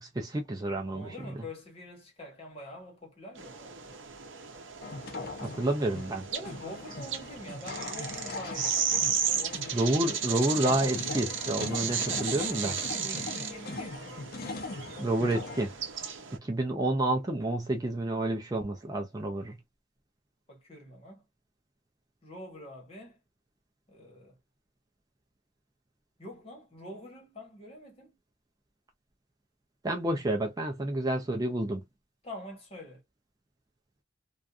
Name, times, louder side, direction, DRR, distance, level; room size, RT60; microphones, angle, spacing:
voice 1, 0.0-1.1 5.4-6.3 9.7-12.8 15.0-15.8 16.3-19.6 29.8-31.8, right 1 dB, 20° right, 0.4 m, -29 dB
voice 2, 0.9-4.0 6.3-9.8 12.0-14.3 20.5-21.2 22.2-23.2 23.9-24.4 26.2-28.1 32.2-33.0, left 1 dB, 30° left, 1.2 m, -45 dB
sound 1, 3.4-16.4, right 7 dB, 70° right, 0.7 m, -35 dB
sound 2, 4.8-15.6, left 3 dB, 50° left, 0.6 m, -40 dB
2.5 x 2.3 x 2.3 m
head